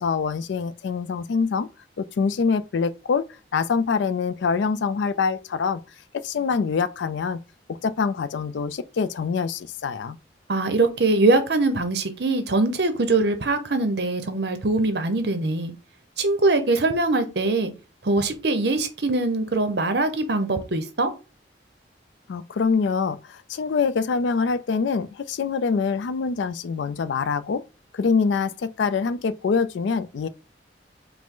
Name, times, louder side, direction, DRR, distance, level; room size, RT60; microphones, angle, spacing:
voice 1, 0.0-1.7 2.0-3.2 3.5-5.8 6.1-7.4 7.8-10.2 22.3-27.6 27.9-30.3, left 5 dB, 75° left, 0.4 m, -25 dB
voice 2, 10.5-15.7 16.2-17.7 18.0-21.1, right 2 dB, 60° right, 0.8 m, -22 dB
4.9 x 2.1 x 3.7 m
head